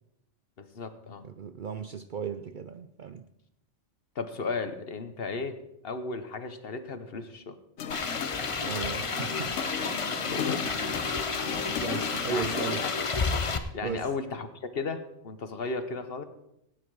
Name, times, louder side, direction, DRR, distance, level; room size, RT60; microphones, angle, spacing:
voice 1, 0.6-1.2 4.1-7.6 10.0-10.6 10.9-11.1 12.3-12.6 12.8-12.9 13.7-16.2, left 4 dB, 55° left, 10 dB, 1.2 m, -35 dB
voice 2, 1.2-3.3 8.6-9.7 10.1-10.4 11.5-12.9 13.8-14.1, right 7 dB, 55° right, 10 dB, 0.6 m, -36 dB
sound 1, 7.8-13.1, left 7 dB, 80° left, 1.1 m, -36 dB
sound 2, 7.9-13.6, left 4 dB, 30° left, 0.7 m, -31 dB
17.0 x 9.5 x 4.7 m, 0.82 s
omnidirectional pair, 1.2 m